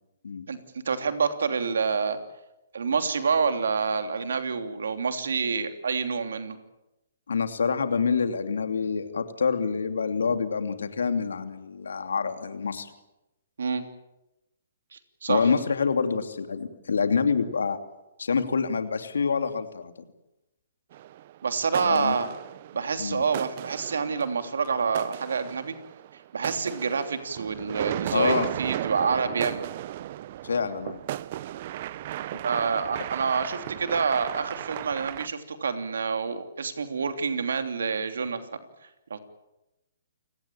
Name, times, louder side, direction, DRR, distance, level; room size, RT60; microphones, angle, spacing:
voice 1, 0.8-2.2 2.7-6.6 13.6-13.8 15.2-15.5 21.4-22.3 22.7-25.7 26.3-29.6 32.4-38.4 39.1-39.2, right 5 dB, 75° right, 8 dB, 3.1 m, -27 dB
voice 2, 7.3-12.9 15.3-17.8 18.2-19.9 21.8-22.1 23.0-23.2 28.1-28.5 30.4-31.0 32.3-32.4, left 5 dB, 75° left, 8 dB, 2.8 m, -26 dB
sound 1, 20.9-21.4 21.7-35.3, right 13 dB, 45° right, 0.8 m, -35 dB
29.0 x 18.5 x 8.7 m, 0.95 s
hypercardioid pair, 135°, 0 cm